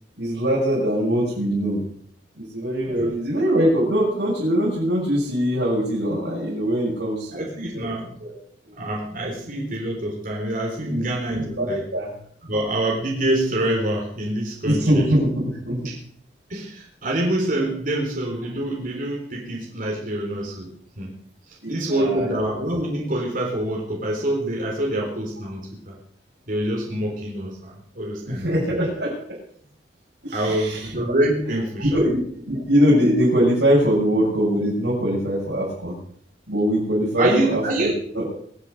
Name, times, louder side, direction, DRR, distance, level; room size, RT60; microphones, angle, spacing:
voice 1, 0.2-1.8 2.4-7.9 8.2-8.3 8.6-8.7 10.8-11.0 11.3-12.1 14.6-15.9 21.6-22.5 28.3-29.4 30.2-30.9 31.8-32.2 32.5-36.0 36.5-37.9 38.1-38.2, equal, 80° right, -7 dB, 6.9 m, -22 dB
voice 2, 7.3-8.1 8.7-11.8 12.4-15.1 16.5-20.7 21.0-21.1 21.5-25.9 26.5-28.8 30.3-32.0 37.2-38.0, right 1 dB, 50° right, -2 dB, 3.9 m, -26 dB
23.5 x 8.2 x 6.5 m, 0.64 s
head